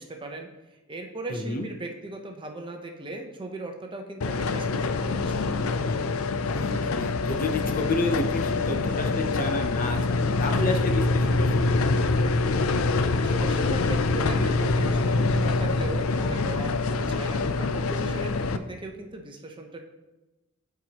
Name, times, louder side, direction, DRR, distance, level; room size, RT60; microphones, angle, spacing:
voice 1, 0.0-5.8 13.2-19.8, right 2 dB, 25° right, 3 dB, 0.8 m, -38 dB
voice 2, 1.3-1.7 6.5-12.0 12.3-12.4, left 2 dB, 40° left, 5 dB, 0.7 m, -31 dB
sound 1, 4.2-18.6, left 3 dB, 80° left, 0.4 m, -25 dB
sound 2, 6.3-8.3 8.9-9.4 10.9-18.0, equal, 20° left, 1.7 m, -41 dB
sound 3, 7.3-18.1, right 1 dB, 80° right, 1.0 m, -44 dB
13.0 x 4.8 x 2.9 m, 1.1 s
head